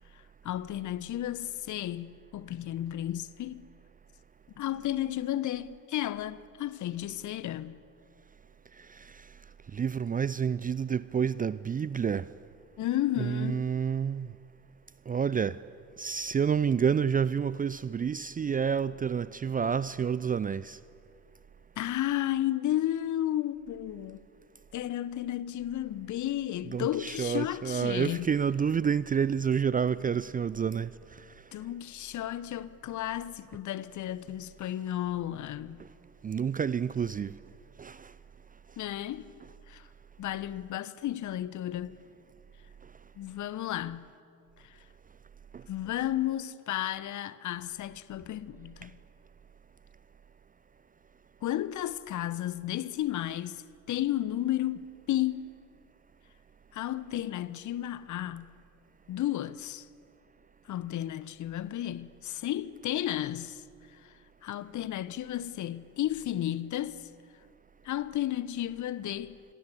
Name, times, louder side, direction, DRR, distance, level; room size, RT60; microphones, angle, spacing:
voice 1, 0.1-3.6 4.6-7.8 12.8-13.7 21.8-24.2 24.7-28.3 31.5-35.8 38.8-39.3 39.7-39.9 40.2-42.0 43.2-44.1 44.6-44.8 45.7-48.9 51.4-55.5 56.7-58.5 59.1-59.9 60.7-63.6 63.9-64.1 64.4-67.1 67.8-69.4, left 13 dB, 45° left, 1.2 m, -33 dB
voice 2, 8.8-9.3 9.7-12.3 13.2-14.3 15.1-15.6 16.0-20.8 26.7-31.2 35.8-35.9 36.2-37.4 37.8-38.1 45.5-45.6, right 7 dB, 20° right, 0.6 m, -29 dB
27.5 x 22.0 x 8.4 m
figure-of-eight pair, 55°, 42 cm